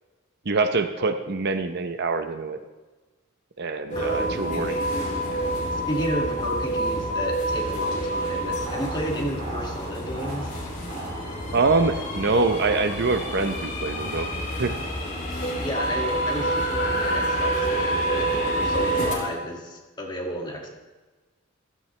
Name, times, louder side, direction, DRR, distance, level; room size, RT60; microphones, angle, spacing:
voice 1, 0.4-2.6 3.6-4.8 5.3-5.5 11.5-14.3 14.6-14.7, right 3 dB, 55° right, 8 dB, 0.8 m, -24 dB
sound 1, 3.9-19.1, right 1 dB, 40° left, 3.0 m, -28 dB
voice 2, 3.9-4.5 5.7-10.5 15.6-20.7, equal, 20° left, -1 dB, 2.2 m, -32 dB
sound 2, 8.4-18.6, right 2 dB, 90° right, 3.8 m, -41 dB
15.0 x 14.0 x 3.3 m, 1.2 s
head